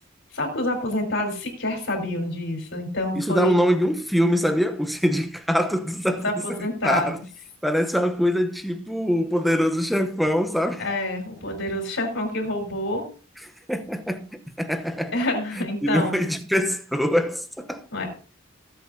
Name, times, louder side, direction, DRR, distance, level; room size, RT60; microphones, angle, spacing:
voice 1, 0.3-3.5 6.1-7.2 10.8-13.1 15.1-16.1 17.9-18.1, left 1 dB, 65° left, 4.6 m, -27 dB
voice 2, 3.1-6.3 6.8-7.2 7.6-10.9 11.4-11.6 13.7-15.2 15.6-17.9, equal, ahead, 0.9 m, -23 dB
18.5 x 8.1 x 2.8 m
head